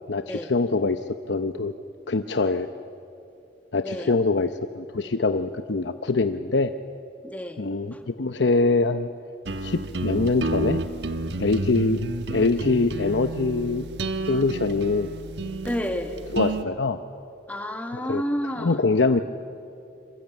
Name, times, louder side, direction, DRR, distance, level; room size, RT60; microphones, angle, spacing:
voice 1, 0.1-1.0 1.3-1.7 2.1-2.7 3.7-4.5 4.7-6.7 7.6-9.1 9.6-10.8 11.4-12.0 12.3-13.8 14.3-15.1 16.3-17.0 18.1-18.2 18.6-19.2, left 3 dB, 85° left, 9 dB, 0.8 m, -23 dB
voice 2, 3.8-4.2 7.2-7.6 7.9-8.0 15.6-16.2 17.5-18.8, equal, 10° left, 6 dB, 1.4 m, -30 dB
sound 1, 9.4-16.6, right 2 dB, 80° right, 1.2 m, -30 dB
26.0 x 24.0 x 9.1 m, 2.6 s
head